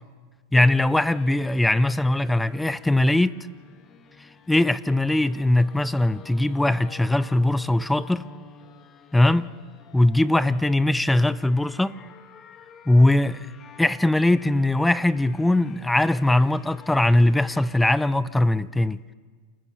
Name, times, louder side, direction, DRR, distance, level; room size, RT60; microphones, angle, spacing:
voice 1, 0.5-3.4 4.5-8.2 9.1-9.5 9.9-11.9 12.9-13.5 13.8-19.0, left 1 dB, 5° left, 0.6 m, -20 dB
sound 1, 0.6-18.0, left 6 dB, 35° left, 2.0 m, -50 dB
28.5 x 18.5 x 6.9 m
hypercardioid pair, 120°, 0 cm